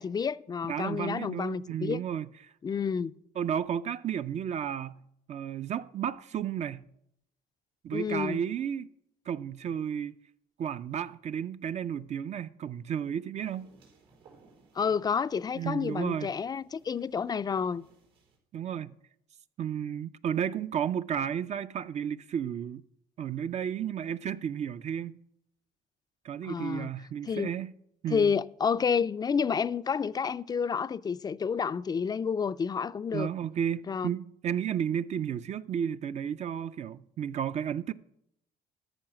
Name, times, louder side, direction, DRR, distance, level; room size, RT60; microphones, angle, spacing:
voice 1, 0.0-2.0 2.6-3.1 7.9-8.4 14.8-17.8 26.4-26.9 27.3-27.5 28.1-33.3 33.9-34.1, left 6 dB, 25° left, 0.3 m, -30 dB
voice 2, 0.7-2.5 3.4-5.0 5.3-6.9 7.8-8.9 9.3-10.2 10.6-13.7 15.6-16.3 18.5-19.0 19.6-22.8 23.2-25.2 26.2-27.7 28.0-28.3 33.1-37.9, right 8 dB, 45° right, 0.4 m, -33 dB
sound 1, 13.4-18.4, right 4 dB, 90° right, 4.6 m, -61 dB
13.5 x 5.6 x 6.0 m
cardioid pair, 110°, 17 cm